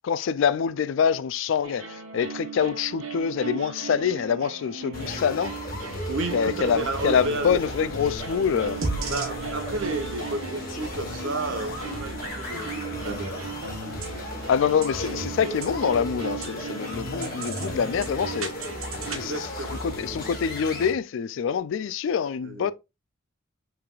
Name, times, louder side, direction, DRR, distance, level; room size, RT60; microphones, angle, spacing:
voice 1, 0.0-5.5 6.3-8.8 14.5-18.5 19.1-22.7, left 7 dB, 65° left, 0.3 m, -25 dB
sound 1, 1.6-19.2, right 5 dB, 85° right, 1.0 m, -37 dB
sound 2, 4.9-20.9, left 1 dB, 45° left, 1.1 m, -35 dB
voice 2, 6.1-7.6 9.1-13.4 19.1-19.8 22.4-22.7, right 2 dB, 65° right, 0.9 m, -32 dB
sound 3, 6.4-12.3, right 2 dB, 30° right, 0.4 m, -47 dB
5.7 x 3.4 x 2.4 m
head